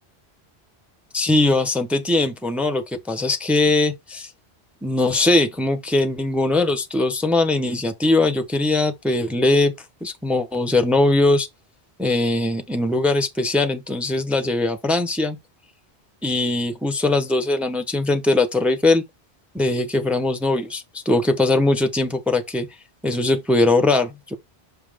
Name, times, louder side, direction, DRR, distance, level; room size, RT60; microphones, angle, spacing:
voice 1, 1.1-4.3 4.8-9.7 10.0-11.5 12.0-15.4 16.2-19.0 19.5-22.7 23.0-24.4, left 2 dB, ahead, 0.8 m, -20 dB
6.0 x 5.6 x 3.5 m
omnidirectional pair, 1.1 m